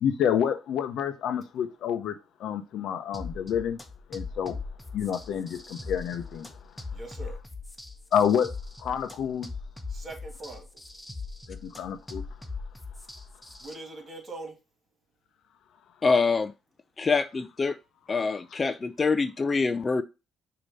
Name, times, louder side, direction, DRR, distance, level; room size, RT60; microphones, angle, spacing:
voice 1, 0.0-3.8 4.1-4.6 4.9-6.5 8.1-8.5 8.8-9.5 11.5-12.2, left 8 dB, 75° left, 0.8 m, -28 dB
sound 1, 3.1-13.7, left 3 dB, 10° left, 1.2 m, -40 dB
voice 2, 6.9-7.4 9.9-10.7 13.6-14.5, right 2 dB, 45° right, 2.7 m, -41 dB
voice 3, 16.0-16.5 17.0-17.8 18.1-20.0, left 4 dB, 35° left, 0.5 m, -25 dB
6.6 x 3.0 x 5.3 m
cardioid pair, 90°, 0 cm